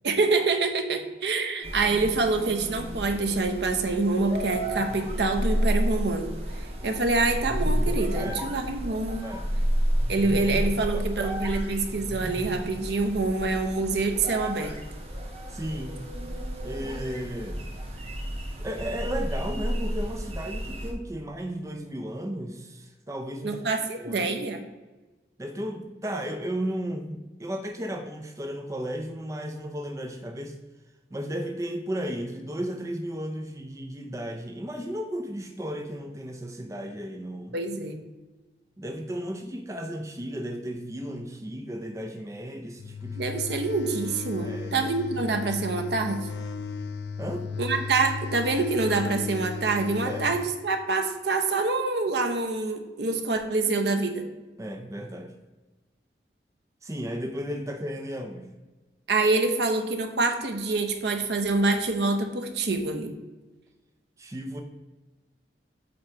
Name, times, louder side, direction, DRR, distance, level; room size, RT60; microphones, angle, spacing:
voice 1, 0.0-6.4 6.8-9.2 10.1-14.7 23.4-24.7 37.5-38.0 43.2-46.3 47.6-54.3 59.1-63.1, right 3 dB, 70° right, 6 dB, 0.7 m, -26 dB
sound 1, 1.6-20.9, equal, 35° right, 1.0 m, -31 dB
voice 2, 8.1-8.5 9.2-9.5 10.9-11.4 15.5-16.0 16.6-17.7 18.6-23.6 24.0-24.3 25.4-30.6 31.1-37.6 38.8-43.2 44.4-44.9 47.2-47.5 50.0-50.3 54.6-55.3 56.8-58.5 64.2-64.6, equal, 20° right, 4 dB, 0.5 m, -34 dB
sound 2, 42.8-50.4, left 4 dB, 75° left, 0.4 m, -35 dB
7.6 x 2.9 x 4.5 m, 1.2 s
head